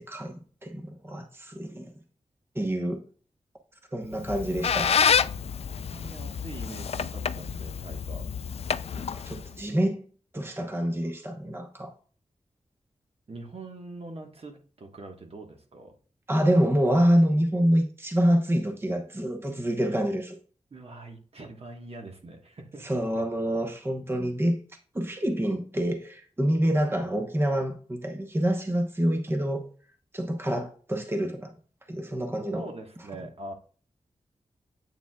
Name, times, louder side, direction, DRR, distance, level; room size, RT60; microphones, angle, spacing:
voice 1, 0.0-1.9 2.5-3.0 3.9-4.9 8.9-10.0 10.3-11.9 16.3-20.4 22.8-24.6 24.9-29.6 30.1-31.5 31.9-32.6, equal, 20° right, 1.0 m, -26 dB
Squeak, 4.1-9.6, left 7 dB, 60° left, 0.3 m, -28 dB
voice 2, 5.7-8.3 13.3-15.9 20.7-23.2 32.5-33.5, right 2 dB, 55° right, 1.4 m, -43 dB
8.3 x 7.0 x 2.3 m
wide cardioid pair, 80°, 12 cm